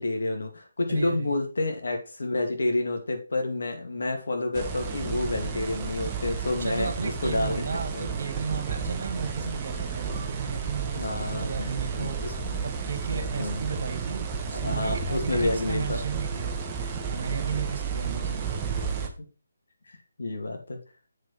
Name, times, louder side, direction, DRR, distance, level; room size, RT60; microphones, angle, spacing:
voice 1, 0.0-7.6 7.9-8.1 10.9-12.6 13.1-13.7 14.5-16.0 17.2-17.6 19.9-20.8, left 2 dB, 70° left, 3 dB, 2.7 m, -30 dB
voice 2, 0.9-1.4 6.5-12.2 12.6-16.6 17.1-18.5, right 5 dB, 60° right, 8 dB, 2.1 m, -34 dB
sound 1, 4.5-19.1, right 5 dB, 20° right, 1.3 m, -32 dB
7.4 x 5.8 x 4.6 m, 0.34 s
figure-of-eight pair, 155°, 0 cm